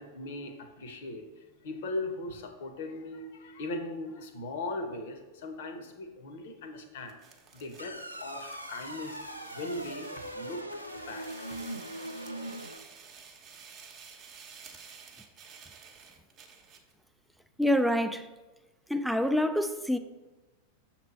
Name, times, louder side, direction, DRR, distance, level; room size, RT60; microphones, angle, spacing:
voice 1, 0.0-7.2 7.5-9.2 9.5-10.6 11.1-11.6, left 2 dB, 55° left, 0.8 m, -39 dB
sound 1, 7.1-16.9, right 6 dB, 30° right, 0.8 m, -52 dB
sound 2, 7.8-12.8, right 1 dB, 90° left, 0.4 m, -41 dB
voice 2, 17.6-18.3 18.9-20.0, equal, ahead, 0.3 m, -26 dB
6.6 x 2.9 x 5.4 m
figure-of-eight pair, 90°, 0 cm